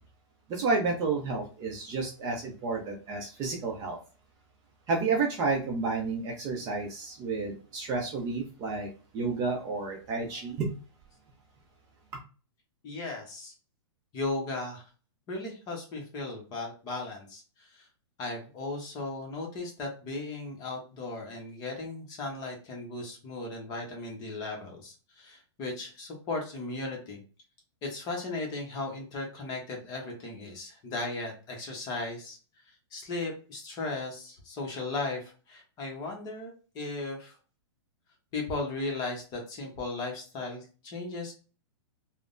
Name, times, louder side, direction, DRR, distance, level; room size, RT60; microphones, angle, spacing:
voice 1, 0.5-4.0 4.9-10.7, right 4 dB, 25° right, 0 dB, 0.6 m, -31 dB
voice 2, 12.8-13.5 14.1-14.8 15.3-17.9 18.2-27.2 27.8-32.4 32.9-37.4 38.3-41.3, left 2 dB, 25° left, 1 dB, 0.8 m, -36 dB
3.3 x 2.1 x 2.5 m, 0.36 s
hypercardioid pair, 155°, 15 cm